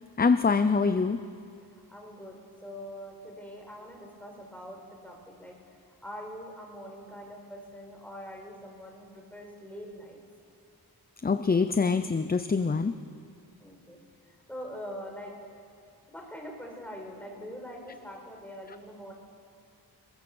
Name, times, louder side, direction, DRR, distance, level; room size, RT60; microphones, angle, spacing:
voice 1, 0.2-1.2 11.2-13.0, left 4 dB, 25° left, 11 dB, 0.7 m, -24 dB
voice 2, 1.9-2.4 2.6-5.6 6.0-10.2 13.6-14.0 14.5-15.3 16.1-19.1, equal, 5° left, 0 dB, 5.3 m, -43 dB
27.0 x 22.0 x 7.1 m, 2.5 s
wide cardioid pair, 105°, 38 cm